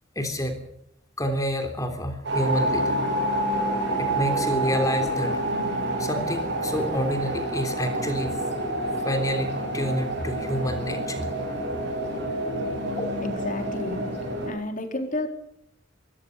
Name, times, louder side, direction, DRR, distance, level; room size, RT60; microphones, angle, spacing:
voice 1, 0.1-0.6 1.2-3.0 4.0-5.4 6.0-8.3 9.0-11.2 13.0-13.1, equal, 20° left, 6 dB, 3.4 m, -28 dB
sound 1, 2.2-14.5, right 1 dB, 60° right, 7.7 m, -28 dB
voice 2, 13.2-14.0 14.4-15.3, left 2 dB, 40° left, 5 dB, 3.9 m, -31 dB
25.0 x 16.5 x 6.6 m, 0.73 s
head